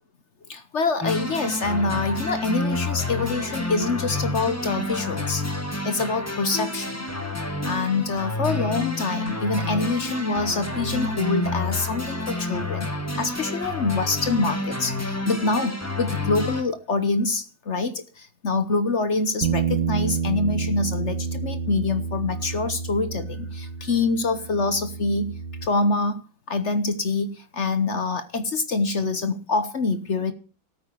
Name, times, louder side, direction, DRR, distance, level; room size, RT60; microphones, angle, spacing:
voice 1, 0.5-5.5 5.8-7.0 7.6-12.9 13.2-26.2 26.5-30.3, left 3 dB, 45° left, 11 dB, 1.1 m, -25 dB
sound 1, 1.0-16.6, left 2 dB, 10° left, 1.6 m, -29 dB
Bass guitar, 19.4-25.7, right 6 dB, 85° right, 1.7 m, -29 dB
14.0 x 8.9 x 6.6 m, 0.39 s
omnidirectional pair, 2.1 m